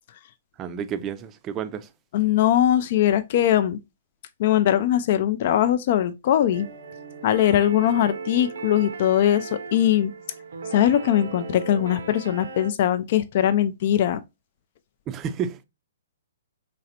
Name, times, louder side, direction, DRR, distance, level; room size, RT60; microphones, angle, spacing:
voice 1, 0.6-1.9 15.1-15.6, right 8 dB, 25° right, 0.4 m, -30 dB
voice 2, 2.1-3.8 4.4-6.7 7.2-10.1 10.7-14.2, left 11 dB, 50° left, 0.3 m, -21 dB
sound 1, 6.5-12.7, right 4 dB, 70° right, 0.6 m, -37 dB
3.9 x 3.2 x 2.7 m
hypercardioid pair, 125°, 0 cm